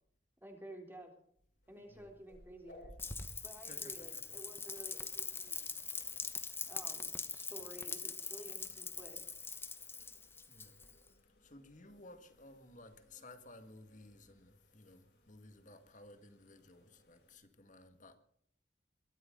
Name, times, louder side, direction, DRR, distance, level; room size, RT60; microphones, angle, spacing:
voice 1, 0.4-1.1 1.7-2.9 3.4-5.7 6.7-9.3, right 1 dB, 10° right, 3.5 m, -52 dB
sound 1, 1.6-17.4, left 1 dB, 75° left, 6.3 m, -65 dB
Rain, 3.0-11.1, left 4 dB, 15° left, 1.2 m, -43 dB
voice 2, 3.7-4.4 10.5-10.8 11.4-18.2, left 2 dB, 45° left, 2.0 m, -57 dB
22.5 x 13.0 x 3.9 m
head